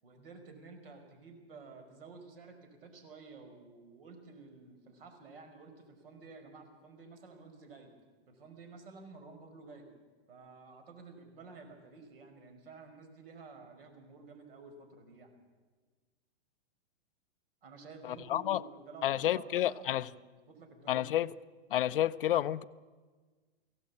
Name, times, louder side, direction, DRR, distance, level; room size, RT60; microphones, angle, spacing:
voice 1, 0.0-7.9 8.3-9.9 10.3-15.3 17.6-21.1, right 4 dB, 55° right, 5.2 m, -52 dB
voice 2, 18.0-18.6 19.0-20.1 20.9-21.3 21.7-22.6, left 12 dB, 55° left, 0.6 m, -30 dB
23.0 x 17.0 x 8.4 m
hypercardioid pair, 180°, 34 cm